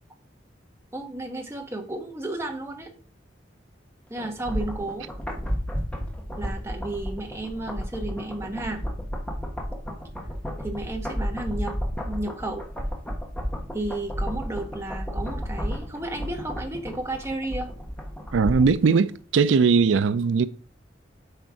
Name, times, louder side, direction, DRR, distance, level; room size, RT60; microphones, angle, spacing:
voice 1, 0.9-2.9 4.1-5.1 6.4-8.9 10.6-11.8 12.1-12.6 13.7-17.7, right 2 dB, 15° right, 1.3 m, -33 dB
sound 1, 4.2-18.9 19.1-19.2, equal, 5° left, 1.4 m, -32 dB
voice 2, 18.3-20.5, right 5 dB, 85° right, 0.4 m, -20 dB
7.9 x 4.5 x 4.9 m
head